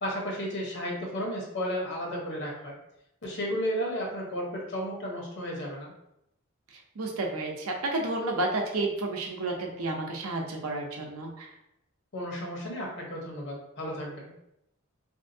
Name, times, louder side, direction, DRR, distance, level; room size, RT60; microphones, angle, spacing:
voice 1, 0.0-2.8 3.2-5.9 12.1-14.3, equal, 60° left, -1 dB, 1.0 m, -33 dB
voice 2, 7.0-11.5, right 2 dB, 80° right, 1 dB, 0.7 m, -31 dB
3.4 x 2.7 x 2.7 m, 0.82 s
head